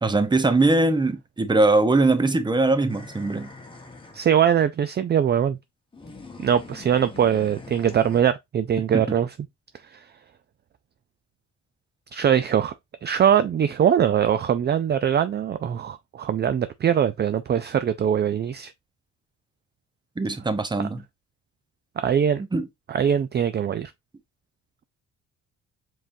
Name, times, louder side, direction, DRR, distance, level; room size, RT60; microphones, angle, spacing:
voice 1, 0.0-3.5 8.9-9.0 20.2-21.0 22.5-22.7, right 2 dB, 15° right, 0.8 m, -21 dB
sound 1, 2.9-4.3 5.9-8.2, left 3 dB, 15° left, 1.2 m, -43 dB
voice 2, 4.1-5.6 6.4-9.3 12.1-12.7 13.0-18.7 20.8-20.9 22.0-22.4 22.9-23.9, right 9 dB, 35° right, 0.4 m, -22 dB
5.0 x 3.8 x 2.6 m
cardioid pair, 90°, 30 cm